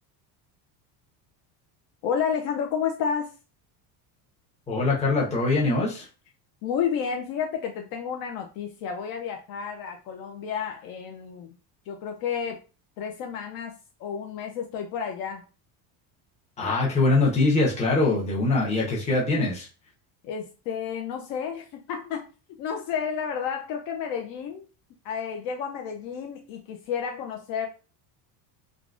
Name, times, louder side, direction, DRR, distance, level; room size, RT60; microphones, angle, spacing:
voice 1, 2.0-3.3 6.6-11.6 11.9-12.6 13.0-13.7 14.0-15.4 20.2-22.2 22.6-24.7 25.0-27.7, left 7 dB, 55° left, 3 dB, 0.5 m, -31 dB
voice 2, 4.7-6.1 16.6-19.7, left 2 dB, 15° left, -3 dB, 0.8 m, -23 dB
3.8 x 2.3 x 2.4 m, 0.33 s
cardioid pair, 175°, 44 cm